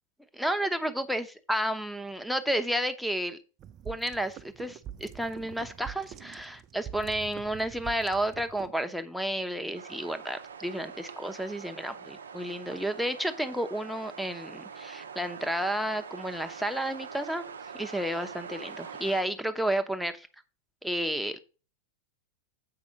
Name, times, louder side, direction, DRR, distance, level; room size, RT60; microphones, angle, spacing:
voice 1, 0.3-3.4 3.8-17.4 17.7-20.3 20.8-21.4, right 1 dB, ahead, 6 dB, 0.9 m, -31 dB
sound 1, 3.6-8.7, right 10 dB, 30° right, 0.5 m, -45 dB
sound 2, 9.7-19.2, right 6 dB, 70° right, 0.7 m, -44 dB
7.8 x 5.2 x 5.1 m, 0.34 s
figure-of-eight pair, 90°, 0 cm